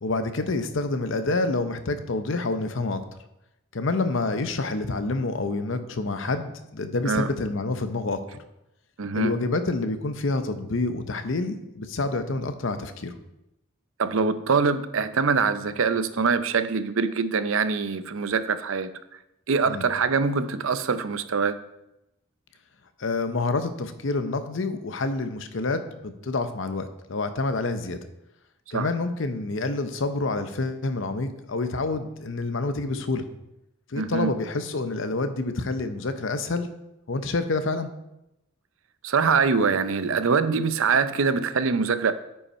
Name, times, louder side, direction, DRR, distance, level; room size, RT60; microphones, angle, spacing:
voice 1, 0.0-3.0 3.7-8.2 9.1-13.1 19.7-19.8 23.0-28.0 28.7-33.2 33.9-36.7 37.1-37.9, left 3 dB, 65° left, 9 dB, 0.7 m, -28 dB
voice 2, 9.0-9.4 14.0-18.9 19.5-21.5 28.7-28.9 34.0-34.3 39.0-42.1, right 5 dB, 75° right, 12 dB, 0.6 m, -24 dB
9.7 x 5.4 x 4.3 m, 0.88 s
head